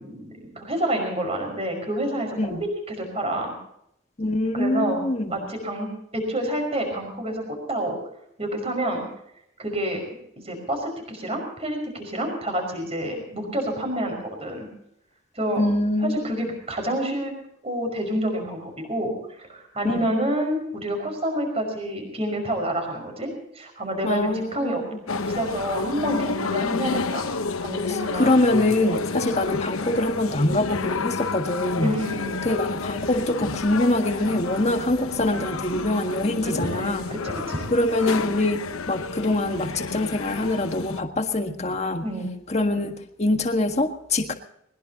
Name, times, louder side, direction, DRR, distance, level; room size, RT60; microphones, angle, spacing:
voice 1, 0.0-2.6 2.9-3.5 4.5-5.0 5.3-7.4 7.7-8.0 8.4-9.0 9.6-10.0 10.4-14.7 15.4-15.6 16.0-17.3 17.6-24.8 25.3-27.3 27.6-28.4 28.8-29.0 31.7-32.4 36.4-37.7 42.0-42.3, right 1 dB, 30° right, 3 dB, 5.5 m, -28 dB
voice 2, 4.2-5.4 15.6-16.3 19.8-20.0 24.0-25.0 27.9-31.9 32.4-37.1 37.7-42.0 42.5-44.3, left 2 dB, 30° left, 5 dB, 1.6 m, -24 dB
sound 1, 25.1-41.0, left 4 dB, 90° left, 1.0 m, -30 dB
21.0 x 21.0 x 2.9 m, 0.75 s
head